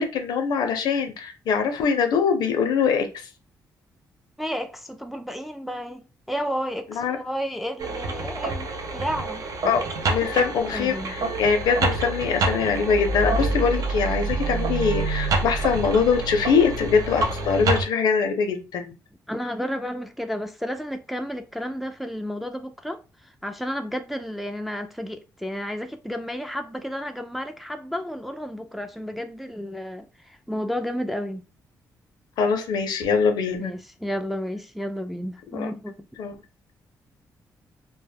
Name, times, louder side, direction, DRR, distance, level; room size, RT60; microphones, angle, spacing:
voice 1, 0.0-3.3 6.9-7.2 9.7-18.9 32.4-33.7 35.5-35.7 36.2-36.3, left 6 dB, 80° left, 0.5 m, -23 dB
voice 2, 4.4-9.4 10.2-10.4 10.7-11.1 19.3-31.4 33.6-36.1, equal, ahead, 0.3 m, -32 dB
sound 1, 7.8-17.9, right 3 dB, 60° right, 0.5 m, -27 dB
2.1 x 2.1 x 3.3 m
cardioid pair, 85°, 7 cm